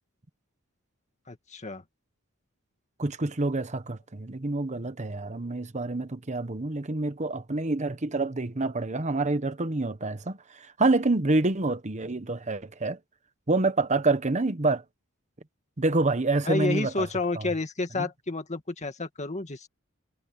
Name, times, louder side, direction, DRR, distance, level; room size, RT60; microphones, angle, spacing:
voice 1, 1.3-1.8 16.4-19.7, left 3 dB, 35° left, 2.0 m, -30 dB
voice 2, 3.0-13.0 13.5-14.8 15.8-17.1 17.3-17.5 17.9-18.0, right 2 dB, 35° right, 1.2 m, -27 dB
head